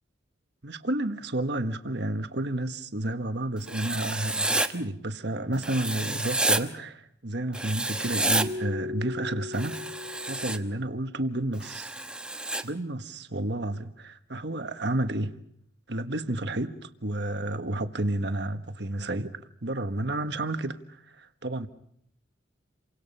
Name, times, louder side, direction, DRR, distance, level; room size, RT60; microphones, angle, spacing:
voice 1, 0.6-9.8 10.3-11.9 12.6-15.4 15.9-21.7, right 1 dB, 60° right, 1.5 m, -31 dB
Writing, 3.7-4.7 5.6-6.6 7.5-8.5 9.5-10.6 11.6-12.6, right 2 dB, 5° right, 1.0 m, -29 dB
Keyboard (musical), 8.4-11.2, left 3 dB, 30° right, 2.3 m, -38 dB
30.0 x 25.0 x 5.6 m
head